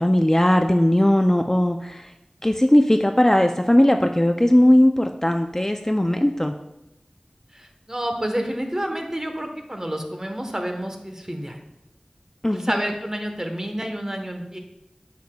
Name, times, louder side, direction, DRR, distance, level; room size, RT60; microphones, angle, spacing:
voice 1, 0.0-2.1 2.4-6.5 12.4-12.9, left 1 dB, 20° left, 5 dB, 0.4 m, -18 dB
voice 2, 7.5-11.6 12.5-14.6, right 1 dB, 25° right, 4 dB, 1.0 m, -29 dB
9.3 x 6.6 x 2.3 m, 0.91 s
wide cardioid pair, 45°, 2 cm